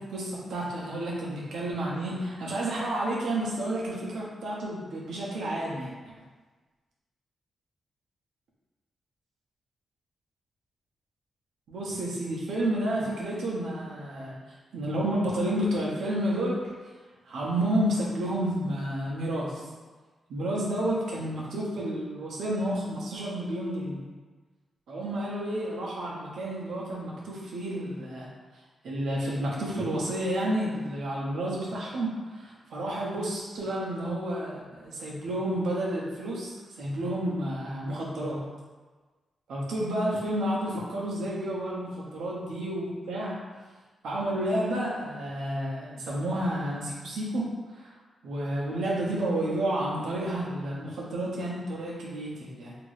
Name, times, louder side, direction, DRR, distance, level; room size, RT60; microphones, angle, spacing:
voice 1, 0.1-5.9 11.7-14.4 14.7-16.6 17.3-19.6 20.3-24.0 24.9-28.3 28.8-36.5 36.8-38.4 39.5-43.4 44.0-47.4 47.8-47.9 48.2-52.8, right 1 dB, 85° right, -4 dB, 0.7 m, -30 dB
2.9 x 2.6 x 3.2 m, 1.3 s
wide cardioid pair, 175°, 0 cm